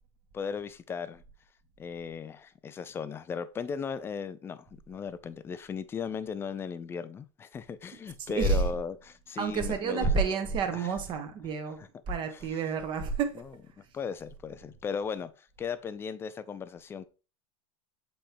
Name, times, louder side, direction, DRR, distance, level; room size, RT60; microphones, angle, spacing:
voice 1, 0.3-1.2 1.8-10.2 10.7-10.9 11.8-11.9 12.3-12.6 13.4-13.5 13.9-17.1, left 6 dB, 15° left, 0.5 m, -37 dB
voice 2, 8.2-8.6 9.4-13.4, right 4 dB, 30° right, 1.2 m, -29 dB
7.8 x 4.4 x 3.4 m
supercardioid pair, 145°, 15 cm